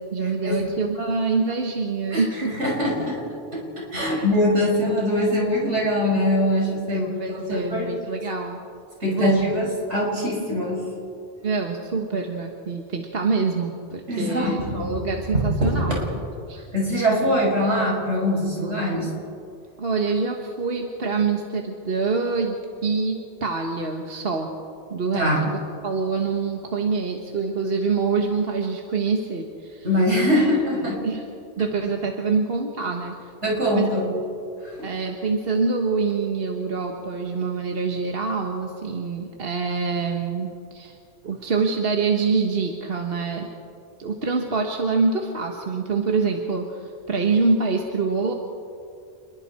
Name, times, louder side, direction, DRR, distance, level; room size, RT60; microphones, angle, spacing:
voice 1, 0.0-2.5 4.0-4.3 6.9-8.6 9.1-9.5 11.4-16.2 16.5-16.6 19.8-24.5 24.9-29.9 30.3-30.5 30.8-31.2 31.6-33.3 33.7-33.9 34.8-40.9 41.2-43.5 44.0-48.3, right 4 dB, 55° right, 2 dB, 1.6 m, -25 dB
voice 2, 2.1-3.2 3.5-7.1 7.5-7.9 9.0-10.8 14.1-14.9 15.7-16.0 16.7-19.1 25.1-25.4 29.8-31.0 33.4-34.1 34.6-34.9, left 1 dB, 80° right, -3 dB, 6.6 m, -23 dB
28.0 x 22.0 x 4.4 m, 2.5 s
omnidirectional pair, 1.2 m